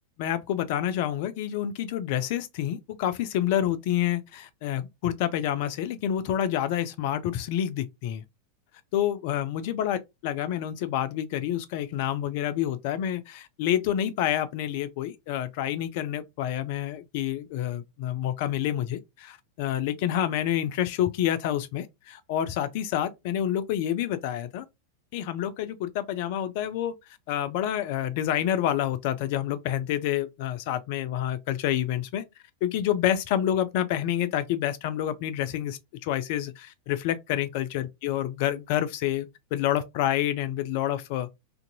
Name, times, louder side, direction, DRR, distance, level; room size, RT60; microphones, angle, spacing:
voice 1, 0.2-8.2 8.9-24.6 25.1-26.9 27.3-32.2 32.6-41.3, left 11 dB, 50° left, 0.4 m, -28 dB
2.6 x 2.5 x 2.7 m
figure-of-eight pair, 90°, 0 cm